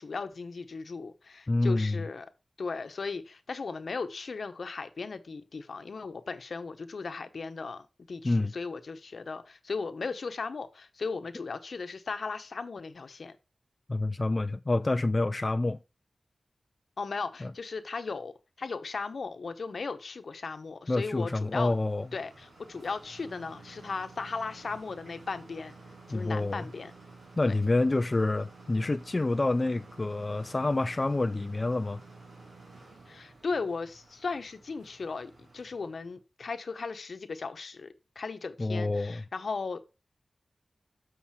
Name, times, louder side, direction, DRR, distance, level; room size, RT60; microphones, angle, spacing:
voice 1, 0.0-2.3 2.6-13.3 17.0-21.7 22.1-25.8 26.1-26.9 27.4-27.5 33.1-39.8, left 4 dB, 70° left, 0.9 m, -37 dB
voice 2, 1.5-2.0 8.2-8.5 13.9-15.8 17.4-17.5 20.9-22.1 26.1-26.7 27.4-32.0 38.6-39.2, left 2 dB, 30° left, 0.3 m, -27 dB
sound 1, 21.5-36.1, right 3 dB, 85° right, 2.8 m, -52 dB
7.5 x 5.5 x 4.3 m
wide cardioid pair, 120°, 0 cm